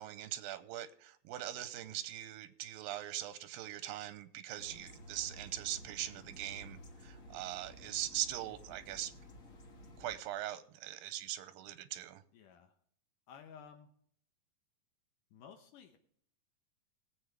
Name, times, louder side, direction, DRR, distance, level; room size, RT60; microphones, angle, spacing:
voice 1, 0.0-9.1 10.0-12.2, right 13 dB, 90° right, 2.5 m, -41 dB
sound 1, 4.6-10.2, equal, 55° left, 0.9 m, -54 dB
voice 2, 12.3-12.7 13.3-13.9 15.3-16.0, left 7 dB, 75° left, 2.4 m, -54 dB
19.5 x 7.9 x 3.4 m
omnidirectional pair, 4.0 m